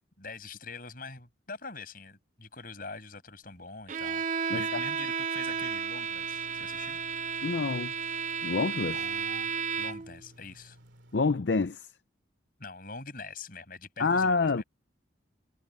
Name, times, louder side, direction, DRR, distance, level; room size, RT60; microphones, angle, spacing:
voice 1, 0.2-7.0 8.9-9.5 9.8-10.8 12.6-14.6, left 4 dB, 50° left, 7.1 m, -44 dB
Bowed string instrument, 3.9-10.2, right 6 dB, 40° right, 0.6 m, -33 dB
voice 2, 4.5-4.8 7.4-7.9 8.4-9.0 11.1-11.9 14.0-14.6, left 4 dB, 65° left, 0.6 m, -27 dB
sound 1, 5.4-11.2, equal, 85° right, 2.7 m, -56 dB
head